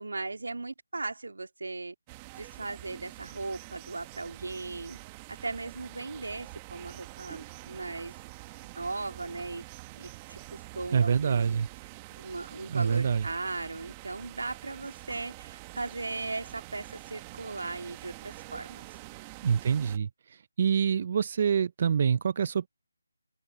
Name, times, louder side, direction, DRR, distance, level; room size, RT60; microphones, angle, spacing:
voice 1, 0.0-1.9 2.4-5.0 5.3-8.1 8.8-9.6 10.0-11.6 12.2-18.9, right 3 dB, 80° right, 2.3 m, -37 dB
sound 1, 2.1-20.0, right 21 dB, 15° right, 1.3 m, -46 dB
voice 2, 10.9-11.7 12.7-13.3 19.4-22.7, right 7 dB, 35° right, 0.5 m, -26 dB
open air
figure-of-eight pair, 170°, 0 cm